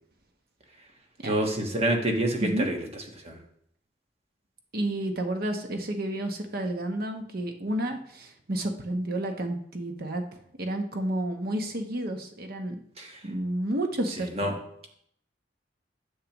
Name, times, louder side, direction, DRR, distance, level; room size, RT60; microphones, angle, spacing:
voice 1, 1.2-2.8 3.2-3.4 13.0-13.1 14.4-14.5, right 1 dB, 35° right, 2 dB, 1.3 m, -26 dB
voice 2, 4.7-10.2 10.6-12.7 13.2-14.6, right 1 dB, 55° right, 5 dB, 1.0 m, -30 dB
10.5 x 6.6 x 3.0 m, 0.69 s
head